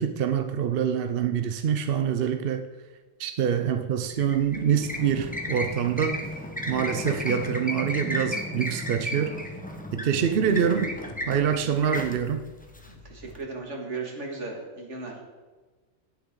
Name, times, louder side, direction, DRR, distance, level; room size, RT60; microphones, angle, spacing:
voice 1, 0.0-2.7 3.2-6.2 6.7-9.4 9.9-10.9 11.3-12.4, right 8 dB, 55° right, 0.8 m, -25 dB
sound 1, 4.0-13.4, equal, 5° left, 1.1 m, -34 dB
voice 2, 12.9-15.2, right 3 dB, 75° right, 2.4 m, -36 dB
17.5 x 7.5 x 3.8 m
omnidirectional pair, 1.2 m